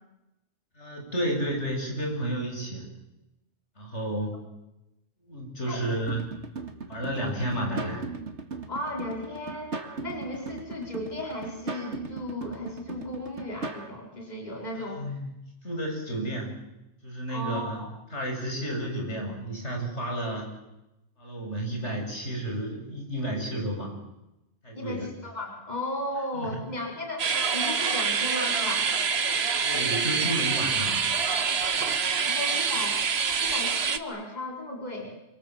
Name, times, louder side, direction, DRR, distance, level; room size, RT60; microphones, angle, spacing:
voice 1, 0.8-2.8 3.8-4.3 5.3-6.2 6.9-8.0 14.8-15.2 15.6-16.5 17.0-20.5 21.2-23.9 24.6-25.1 26.3-26.5 29.6-31.1, right 1 dB, 80° left, 1 dB, 7.8 m, -31 dB
sound 1, 6.1-13.9, right 3 dB, 85° right, 2.4 m, -38 dB
voice 2, 8.7-9.7 10.0-15.2 17.3-17.9 24.7-28.9 32.2-35.1, left 1 dB, 40° left, 0 dB, 5.0 m, -35 dB
sound 2, 27.2-34.0, right 5 dB, 65° right, 1.4 m, -26 dB
27.5 x 25.5 x 7.7 m, 0.92 s
omnidirectional pair, 1.2 m